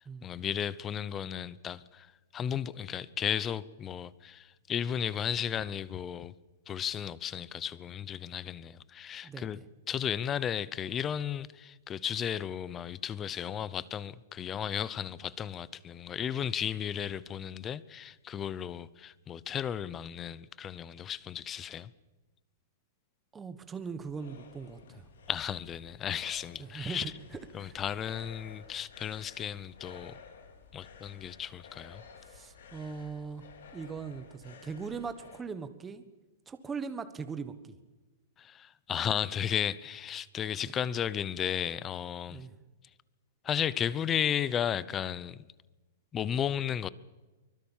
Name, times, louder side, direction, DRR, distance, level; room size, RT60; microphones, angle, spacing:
voice 1, 0.0-6.3 6.7-9.6 9.9-21.9 25.3-27.1 27.5-30.2 30.7-32.0 38.4-42.5 43.4-45.5 46.1-46.9, left 9 dB, 15° left, 0.7 m, -34 dB
voice 2, 9.2-9.6 23.3-25.1 26.6-27.1 27.6-27.8 32.3-33.4 33.7-36.0 36.5-37.8 42.3-42.6, right 5 dB, 10° right, 1.3 m, -40 dB
sound 1, 23.6-35.5, left 5 dB, 80° left, 4.0 m, -53 dB
24.0 x 22.0 x 7.4 m
hypercardioid pair, 160°, 0 cm